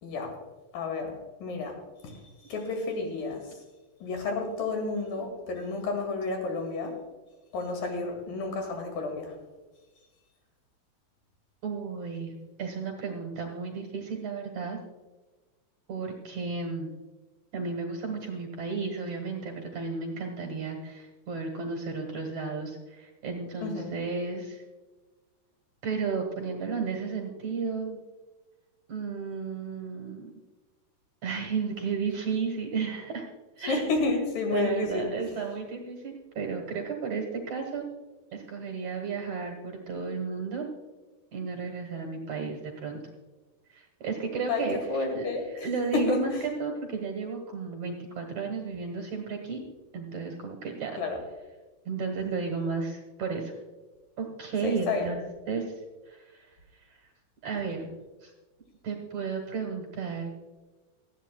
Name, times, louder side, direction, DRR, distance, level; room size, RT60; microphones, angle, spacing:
voice 1, 0.0-0.4 0.7-3.6 4.0-7.0 7.5-9.4 23.6-23.9 33.7-35.1 44.5-45.7 45.9-46.4 51.0-51.2 54.6-55.2, left 3 dB, 60° left, 3 dB, 3.7 m, -31 dB
voice 2, 11.6-14.8 15.9-16.9 17.5-24.6 25.8-28.0 28.9-30.3 31.2-33.3 33.6-33.9 34.5-37.9 38.3-40.7 41.3-43.0 43.7-45.3 45.5-46.3 46.6-49.6 49.9-51.0 51.9-53.6 54.2-55.8 56.1-56.5 56.8-57.0 57.4-57.9 58.2-58.3 58.8-60.4, right 5 dB, 60° right, 3 dB, 2.1 m, -33 dB
17.5 x 13.5 x 2.3 m, 1.2 s
omnidirectional pair, 4.7 m